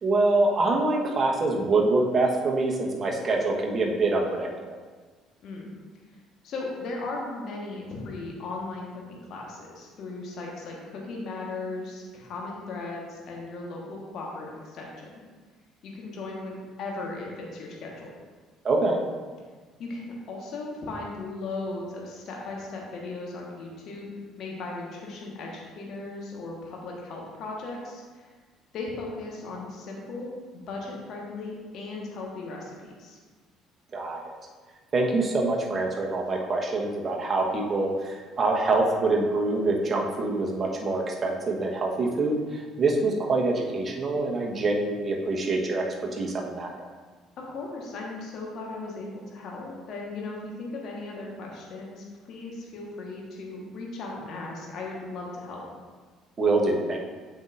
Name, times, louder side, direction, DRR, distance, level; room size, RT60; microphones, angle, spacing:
voice 1, 0.0-4.8 18.6-19.0 33.9-34.3 34.9-45.8 46.1-46.8 56.4-57.0, right 2 dB, 40° right, 0 dB, 1.2 m, -25 dB
voice 2, 6.4-15.1 15.8-18.1 19.8-28.3 28.7-33.2 47.4-55.6, left 3 dB, 55° left, -2 dB, 1.4 m, -37 dB
7.7 x 5.5 x 2.6 m, 1.4 s
hypercardioid pair, 55°, 0 cm